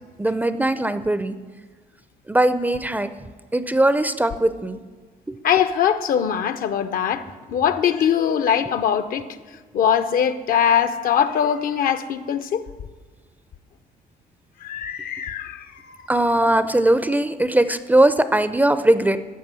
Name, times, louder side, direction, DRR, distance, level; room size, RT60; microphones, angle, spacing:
voice 1, 0.2-1.3 2.3-3.1 3.5-4.8 5.3-5.4 16.1-19.2, right 1 dB, 10° right, 0.5 m, -20 dB
voice 2, 5.4-9.3 9.7-12.7 14.6-16.6, left 8 dB, 55° left, 0.7 m, -22 dB
14.0 x 5.6 x 7.5 m
cardioid pair, 110°, 17 cm